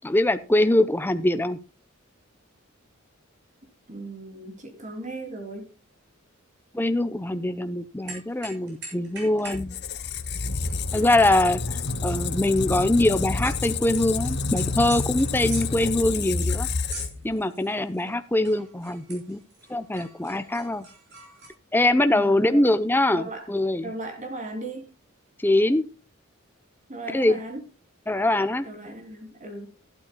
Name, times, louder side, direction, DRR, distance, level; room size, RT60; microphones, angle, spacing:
voice 1, 0.0-1.6 6.7-9.7 10.9-16.7 17.2-19.4 19.7-20.9 21.7-23.9 25.4-25.8 27.1-27.4 28.1-28.7, left 1 dB, 10° left, 10 dB, 0.7 m, -23 dB
voice 2, 3.9-5.7 22.1-22.6 23.1-23.5 23.8-24.9 26.9-27.6 28.6-29.7, right 2 dB, 35° right, 4 dB, 3.0 m, -37 dB
sound 1, 8.1-9.7 10.0-13.6 13.9-18.1 18.4-21.5, right 3 dB, 55° right, 6.6 m, -44 dB
Squeak, 9.5-17.4, left 4 dB, 55° left, 1.0 m, -29 dB
15.0 x 12.0 x 2.3 m, 0.33 s
head